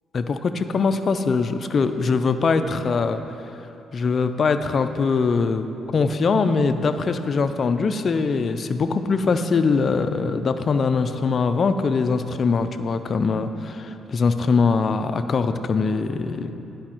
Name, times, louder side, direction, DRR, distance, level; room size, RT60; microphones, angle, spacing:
voice 1, 0.1-3.2 3.9-5.7 5.9-16.5, left 4 dB, 45° left, 9 dB, 0.4 m, -22 dB
10.5 x 5.0 x 4.4 m, 2.9 s
cardioid pair, 90°, 0 cm